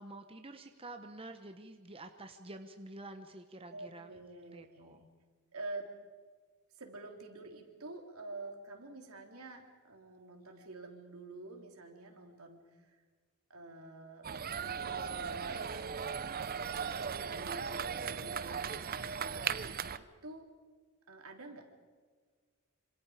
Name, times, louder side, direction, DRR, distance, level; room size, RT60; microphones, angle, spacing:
voice 1, 0.0-4.1 4.5-5.0, right 2 dB, 25° right, 6 dB, 1.1 m, -48 dB
voice 2, 3.7-5.1 5.5-5.9 6.7-13.0 13.5-14.3 14.6-19.6 20.0-20.5 21.1-21.7, right 2 dB, 75° right, 3 dB, 3.3 m, -48 dB
sound 1, 14.2-20.0, right 7 dB, 45° right, 0.7 m, -37 dB
27.0 x 26.5 x 5.0 m, 1.5 s
head